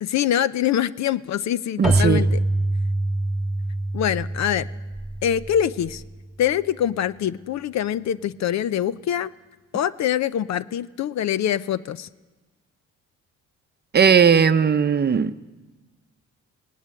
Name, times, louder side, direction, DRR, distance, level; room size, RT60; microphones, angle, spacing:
voice 1, 0.0-2.4 3.9-4.7 5.2-6.0 6.4-9.3 9.7-12.1, left 10 dB, 65° left, 16 dB, 0.7 m, -24 dB
Keyboard (musical), 1.8-6.3, right 2 dB, ahead, 2.0 m, -25 dB
voice 2, 1.8-2.2 13.9-15.3, right 6 dB, 35° right, 11 dB, 0.7 m, -17 dB
18.0 x 18.0 x 8.8 m, 1.2 s
cardioid pair, 90°, 30 cm